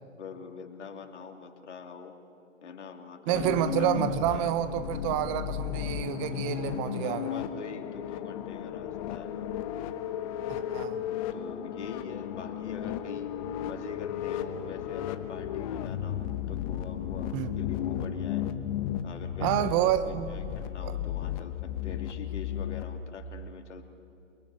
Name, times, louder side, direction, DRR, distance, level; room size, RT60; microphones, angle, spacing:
voice 1, 0.1-2.1 2.6-4.5 6.3-9.5 11.3-13.3 13.6-18.5 19.0-23.8, left 5 dB, 60° left, 2.9 m, -44 dB
sound 1, 3.3-22.8, left 10 dB, 30° left, 1.2 m, -34 dB
voice 2, 3.3-7.4 10.5-11.0 17.3-17.5 19.4-20.4 20.8-21.0, right 11 dB, 25° right, 1.3 m, -29 dB
29.0 x 22.0 x 9.1 m
figure-of-eight pair, 130°, 38 cm